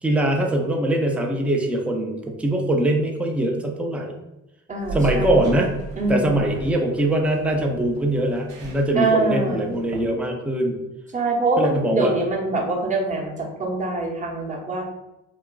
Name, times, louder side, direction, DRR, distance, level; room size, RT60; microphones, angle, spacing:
voice 1, 0.0-4.1 4.9-5.8 6.1-10.8 11.6-12.1, right 1 dB, 5° right, 1 dB, 0.4 m, -22 dB
voice 2, 4.7-5.4 6.0-6.5 8.9-9.7 11.1-13.3 13.6-14.8, right 3 dB, 20° right, -2 dB, 0.8 m, -24 dB
sound 1, 4.8-10.0, right 4 dB, 70° right, 0.6 m, -35 dB
2.8 x 2.4 x 2.3 m, 0.96 s
hypercardioid pair, 65°, 34 cm